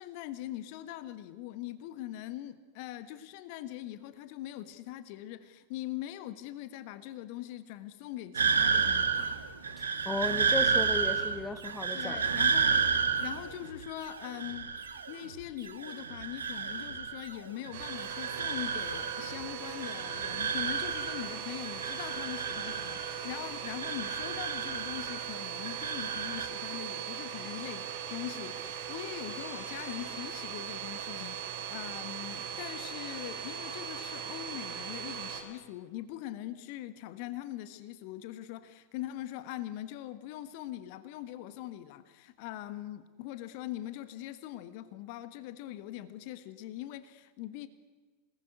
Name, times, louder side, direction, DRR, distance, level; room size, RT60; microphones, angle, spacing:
voice 1, 0.0-9.3 11.9-47.7, left 13 dB, 45° left, 1.4 m, -42 dB
sound 1, 8.3-15.3 15.6-17.3 17.6-19.4 19.6-21.3 21.6-23.3 23.6-25.3 25.6-26.5, right 5 dB, 70° right, 1.9 m, -31 dB
voice 2, 9.8-12.2, left 2 dB, 10° left, 1.7 m, -35 dB
Domestic sounds home sounds, 17.7-35.4, right 8 dB, 50° right, 4.9 m, -39 dB
27.5 x 20.0 x 9.7 m
figure-of-eight pair, 90°, 0 cm